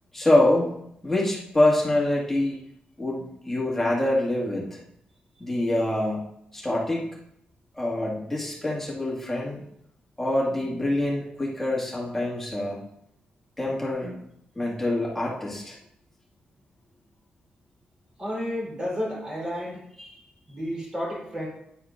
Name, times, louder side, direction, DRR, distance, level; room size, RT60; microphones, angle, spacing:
voice 1, 0.1-0.7 1.0-2.6 3.0-4.8 5.4-6.2 6.5-7.0 7.8-9.6 10.2-12.8 13.6-14.2 14.6-15.8 20.0-20.2, left 1 dB, 10° left, -4 dB, 1.9 m, -25 dB
voice 2, 18.2-19.8 20.5-21.5, equal, 25° right, -5 dB, 3.4 m, -31 dB
9.6 x 9.4 x 2.5 m, 0.75 s
wide cardioid pair, 170°, 3 cm